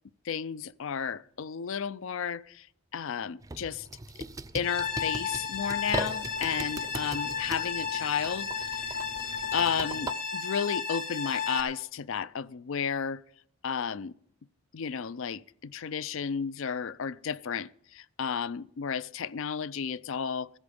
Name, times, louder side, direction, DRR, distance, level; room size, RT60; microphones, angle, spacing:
voice 1, 0.3-2.7 2.9-3.9 4.5-9.0 9.5-13.2 13.6-14.1 14.7-20.6, left 7 dB, 60° left, 0.4 m, -33 dB
sound 1, 3.4-10.1, right 3 dB, 15° right, 0.4 m, -40 dB
sound 2, 4.6-11.6, left 6 dB, 45° left, 1.8 m, -33 dB
15.0 x 8.2 x 6.9 m
head